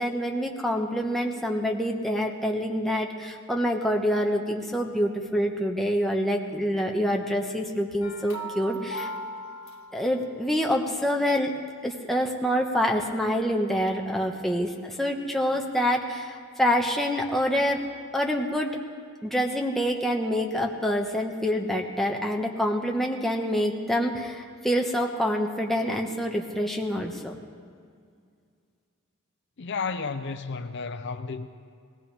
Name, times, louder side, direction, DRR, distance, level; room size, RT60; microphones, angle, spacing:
voice 1, 0.0-9.1 9.9-11.5 11.8-17.9 18.1-18.8 19.2-27.3, equal, ahead, 1.1 m, -26 dB
sound 1, 8.0-10.5, right 1 dB, 85° left, 1.4 m, -38 dB
voice 2, 29.6-31.5, left 4 dB, 60° left, 0.6 m, -32 dB
20.0 x 18.5 x 3.4 m
head